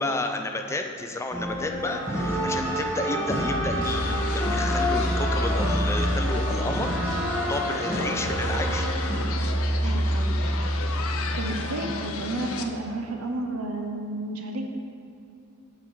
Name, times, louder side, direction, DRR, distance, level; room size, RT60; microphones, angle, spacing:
voice 1, 0.0-6.9 7.5-8.9, left 2 dB, 15° left, 5 dB, 0.4 m, -31 dB
sound 1, 1.3-9.2, equal, 10° right, 1.3 m, -28 dB
sound 2, 3.3-7.2 7.6-12.2, equal, 30° right, 1.7 m, -28 dB
sound 3, 3.8-12.6, left 4 dB, 70° left, 0.5 m, -35 dB
voice 2, 9.8-10.3 11.1-14.6, right 2 dB, 80° right, 3 dB, 0.7 m, -32 dB
5.9 x 4.9 x 6.3 m, 2.4 s
head